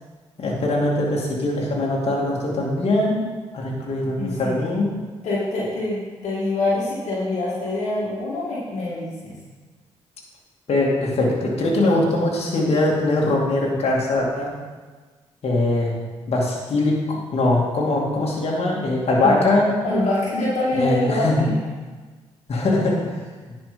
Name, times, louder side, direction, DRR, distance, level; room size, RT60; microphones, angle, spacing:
voice 1, 0.4-3.2 3.5-4.9 10.7-14.5 15.4-15.9 16.3-19.7 20.7-21.4 22.5-23.2, left 2 dB, 60° left, -3 dB, 2.4 m, -21 dB
voice 2, 4.2-4.6 5.2-9.4 19.2-19.4 19.8-21.5, left 2 dB, 75° left, -7 dB, 2.2 m, -25 dB
10.0 x 5.4 x 5.2 m, 1.4 s
supercardioid pair, 50°, 12 cm